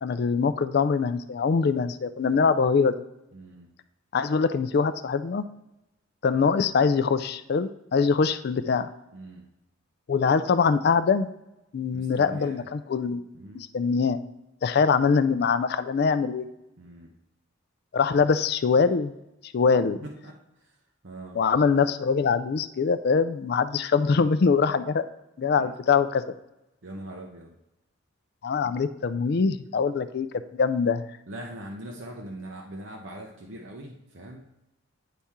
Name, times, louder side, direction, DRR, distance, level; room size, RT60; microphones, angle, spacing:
voice 1, 0.0-3.0 4.1-5.4 6.2-8.9 10.1-11.3 11.7-13.2 13.5-14.2 14.6-16.5 17.9-19.1 19.4-20.0 21.4-25.0 25.4-26.2 28.4-30.3 30.5-31.0, left 5 dB, 50° left, 12 dB, 0.3 m, -23 dB
voice 2, 3.3-3.7 9.1-9.5 11.9-12.7 13.3-13.7 16.8-17.1 20.0-20.8 21.0-21.4 25.6-25.7 26.8-27.6 28.6-28.8 31.3-34.5, right 1 dB, 60° right, 0 dB, 0.8 m, -41 dB
10.0 x 4.2 x 3.6 m, 0.90 s
head